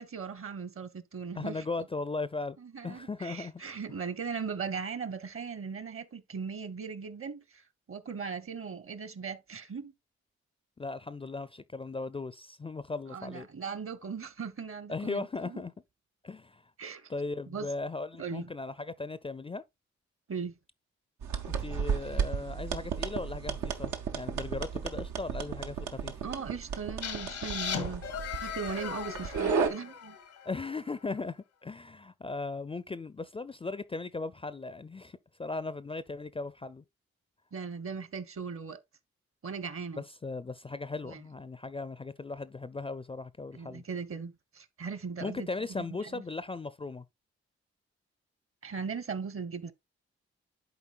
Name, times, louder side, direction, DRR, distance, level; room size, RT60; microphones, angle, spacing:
voice 1, 0.0-1.6 2.6-7.6 7.9-9.9 13.1-15.6 16.8-17.1 17.5-17.7 18.2-18.5 20.3-20.5 26.2-28.0 28.4-30.2 37.5-38.8 39.4-40.0 41.0-41.2 43.5-45.5 45.9-46.2 48.6-49.7, right 5 dB, 50° right, 0.9 m, -38 dB
voice 2, 1.4-2.6 2.8-3.6 10.8-13.5 14.9-15.7 16.2-16.7 17.1-19.6 21.5-26.2 30.4-36.8 39.9-43.8 45.2-47.0, left 3 dB, 20° left, 0.4 m, -37 dB
sound 1, 21.2-29.7, right 6 dB, 80° right, 0.7 m, -33 dB
sound 2, 27.0-30.8, left 7 dB, 85° left, 1.0 m, -38 dB
11.0 x 4.0 x 2.4 m
supercardioid pair, 40°, 29 cm